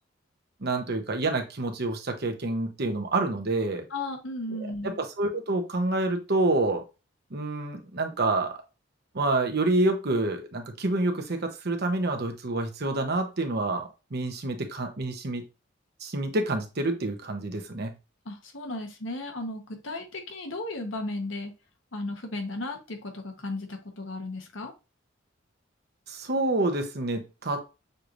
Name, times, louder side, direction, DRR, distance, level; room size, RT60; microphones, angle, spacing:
voice 1, 0.6-3.9 4.6-6.8 7.3-8.5 9.1-15.4 16.0-17.9 26.1-27.6, right 2 dB, 55° right, 5 dB, 1.0 m, -28 dB
voice 2, 3.9-5.0 18.2-21.5 21.9-24.7, left 2 dB, 80° left, 4 dB, 1.2 m, -35 dB
6.6 x 3.1 x 2.6 m, 0.28 s
head